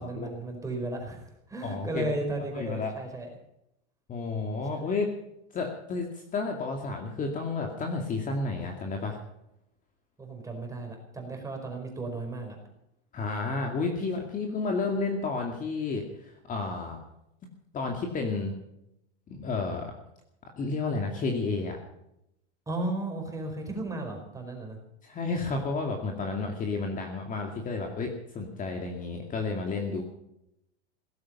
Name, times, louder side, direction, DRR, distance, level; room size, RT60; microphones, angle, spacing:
voice 1, 0.0-3.3 10.2-12.6 22.7-24.8, right 2 dB, 10° right, 3 dB, 4.7 m, -35 dB
voice 2, 1.6-2.1 2.5-2.9 4.1-5.1 5.5-9.2 13.1-17.0 17.7-18.5 19.3-19.9 20.6-21.8 25.0-30.0, left 3 dB, 25° left, 2 dB, 2.4 m, -31 dB
17.0 x 15.0 x 5.6 m, 0.81 s
supercardioid pair, 150°, 34 cm